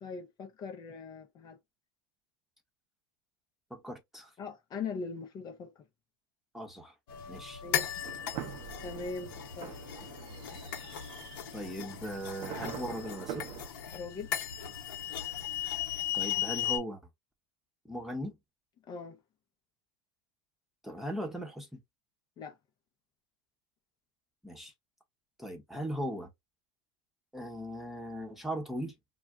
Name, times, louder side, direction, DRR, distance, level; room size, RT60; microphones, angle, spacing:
voice 1, 0.0-1.6 4.4-5.8 7.6-8.1 8.8-9.7 13.9-14.3 18.9-19.2 22.4-22.6, left 4 dB, 35° left, 0.6 m, -41 dB
voice 2, 3.7-4.3 6.5-6.9 7.3-7.6 11.5-13.4 16.1-17.0 17.9-18.4 20.8-21.8 24.4-24.7 25.4-26.3 27.3-28.9, equal, ahead, 0.8 m, -38 dB
sound 1, 7.1-16.8, left 10 dB, 70° left, 0.9 m, -37 dB
sound 2, 8.0-13.7, right 10 dB, 50° right, 0.6 m, -45 dB
2.4 x 2.1 x 3.5 m
hypercardioid pair, 105°, 12 cm